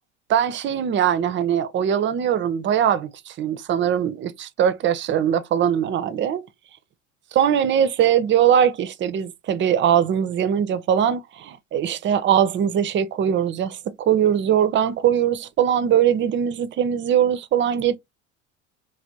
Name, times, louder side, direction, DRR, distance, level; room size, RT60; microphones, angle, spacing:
voice 1, 0.3-6.4 7.3-18.0, right 9 dB, 35° right, 0.5 m, -21 dB
3.3 x 2.2 x 2.7 m
hypercardioid pair, 70°, 36 cm